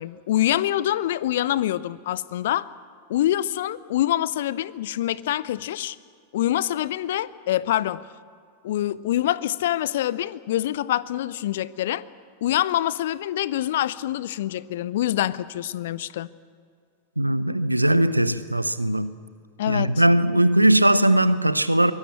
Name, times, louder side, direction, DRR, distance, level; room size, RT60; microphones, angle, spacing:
voice 1, 0.0-2.7 3.1-6.0 6.3-8.0 8.6-12.0 12.4-16.3 19.6-19.9, left 13 dB, 55° left, 0.7 m, -25 dB
voice 2, 17.2-19.1 19.7-21.9, right 1 dB, 85° right, 0.8 m, -19 dB
24.0 x 19.5 x 8.4 m
figure-of-eight pair, 90°, 0 cm